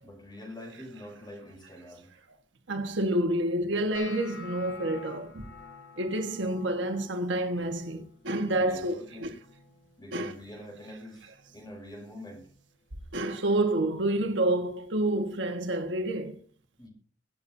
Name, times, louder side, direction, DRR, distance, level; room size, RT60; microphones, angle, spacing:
voice 1, 0.0-2.1 8.5-9.3 10.0-12.5 16.8-16.9, left 1 dB, 25° left, 6.5 m, -45 dB
voice 2, 2.7-5.5 6.0-9.3 10.1-10.3 13.1-16.4, right 1 dB, 70° right, 1.4 m, -28 dB
sound 1, 3.9-10.0 10.3-10.8 11.2-11.7 12.3-12.6 14.3-14.4, left 4 dB, 75° left, 3.4 m, -49 dB
24.5 x 8.5 x 2.7 m
head